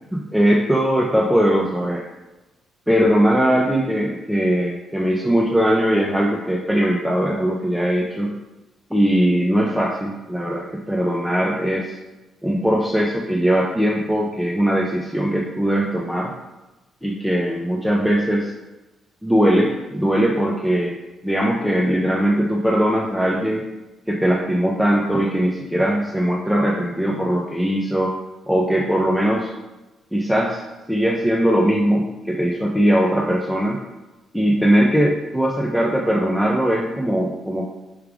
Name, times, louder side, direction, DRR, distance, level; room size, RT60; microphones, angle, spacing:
voice 1, 0.1-2.1 2.9-8.3 8.9-12.0 12.4-16.3 17.0-18.5 19.2-23.6 24.1-28.1 28.5-29.5 30.1-30.6 30.9-33.8 34.3-37.7, equal, ahead, -2 dB, 0.4 m, -20 dB
4.8 x 2.4 x 3.4 m, 1.1 s
cardioid pair, 90°, 0 cm